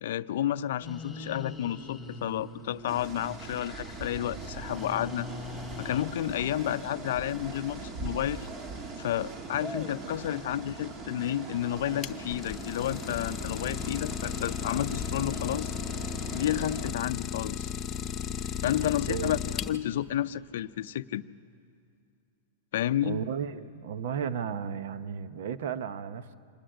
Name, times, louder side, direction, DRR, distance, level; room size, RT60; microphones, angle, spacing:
voice 1, 0.0-5.3 5.8-8.5 9.0-15.7 16.3-17.7 18.6-21.3 22.7-23.2, left 12 dB, 70° left, 14 dB, 0.5 m, -31 dB
sound 1, 0.8-6.0, left 3 dB, 5° left, 2.5 m, -43 dB
sound 2, 2.9-16.9, right 3 dB, 30° right, 1.7 m, -41 dB
Idling, 11.7-20.1, left 8 dB, 30° left, 0.8 m, -35 dB
voice 2, 18.8-19.3 23.0-26.3, right 7 dB, 70° right, 13 dB, 0.8 m, -34 dB
25.5 x 10.0 x 10.0 m, 2.4 s
hypercardioid pair, 130°, 0 cm